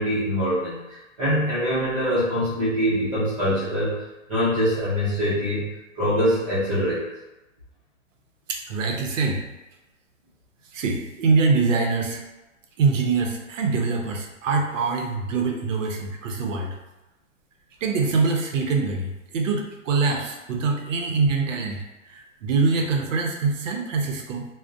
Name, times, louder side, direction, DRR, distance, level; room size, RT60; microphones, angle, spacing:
voice 1, 0.0-5.7 6.0-7.0, equal, 25° right, -11 dB, 0.6 m, -24 dB
voice 2, 8.5-9.4 10.7-12.2 12.8-16.8 17.8-21.8 22.1-24.5, right 4 dB, 70° right, 2 dB, 0.6 m, -24 dB
2.4 x 2.0 x 2.5 m, 1.0 s
hypercardioid pair, 165°, 40 cm